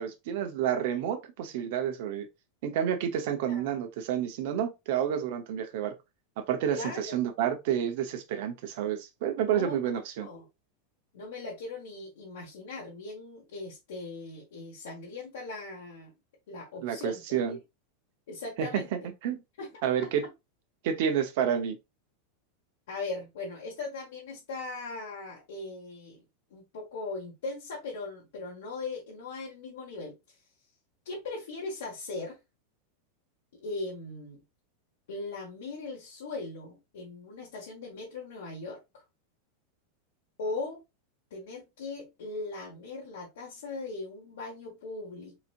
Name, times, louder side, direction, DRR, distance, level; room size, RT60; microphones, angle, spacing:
voice 1, 0.0-2.3 2.6-5.9 6.5-10.3 16.8-17.6 18.6-19.4 19.8-20.2 20.8-21.8, right 9 dB, 65° right, 0.9 m, -29 dB
voice 2, 6.7-7.1 9.5-9.8 10.2-10.4 11.1-16.1 16.5-17.2 17.5-17.6 18.3-18.9 19.6-20.1 22.9-26.2 26.5-30.4 31.0-32.4 33.5-34.4 35.1-39.0 40.4-40.8 41.3-45.5, left 3 dB, 80° left, 1.5 m, -39 dB
4.0 x 2.9 x 2.5 m
supercardioid pair, 125°, 0 cm